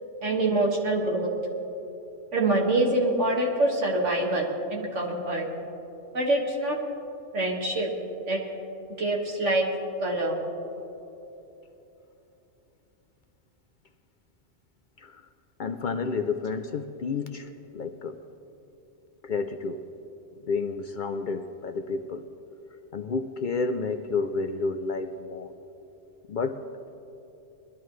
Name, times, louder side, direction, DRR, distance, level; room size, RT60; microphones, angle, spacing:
voice 1, 0.2-1.3 2.3-4.4 4.7-5.4 6.1-6.8 7.3-7.9 8.3-8.4 9.0-9.7 10.0-10.4, right 2 dB, 90° right, -1 dB, 2.2 m, -25 dB
voice 2, 15.6-18.2 19.2-19.8 20.5-22.2 22.9-25.5 26.3-26.6, left 4 dB, 55° left, 7 dB, 0.6 m, -30 dB
21.0 x 12.0 x 3.2 m, 3.0 s
omnidirectional pair, 1.2 m